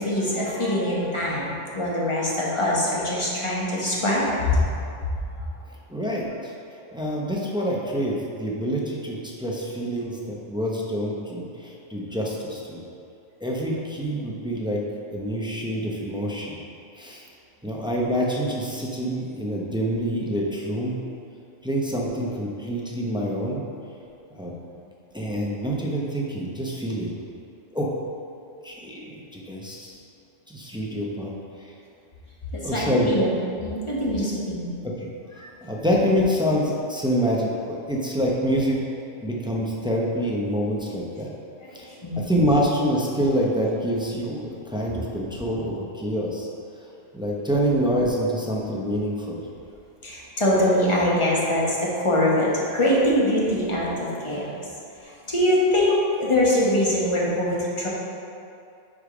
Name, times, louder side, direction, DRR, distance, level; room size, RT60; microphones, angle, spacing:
voice 1, 0.0-4.3 24.4-24.5 32.5-33.3 33.6-34.7 35.4-35.5 42.0-42.4 50.0-54.5 55.3-57.9, left 1 dB, 25° left, -5 dB, 1.1 m, -23 dB
voice 2, 5.9-6.5 6.9-12.8 13.4-14.8 15.1-16.6 17.0-17.2 17.6-21.0 21.6-23.6 24.4-24.5 25.1-27.2 27.7-27.9 28.6-30.0 30.5-31.3 31.6-31.7 32.6-33.1 34.8-35.1 35.6-38.9 39.2-41.3 41.7-46.5 47.1-49.4, equal, 5° right, -3 dB, 0.5 m, -26 dB
5.0 x 4.9 x 5.0 m, 2.6 s
omnidirectional pair, 1.2 m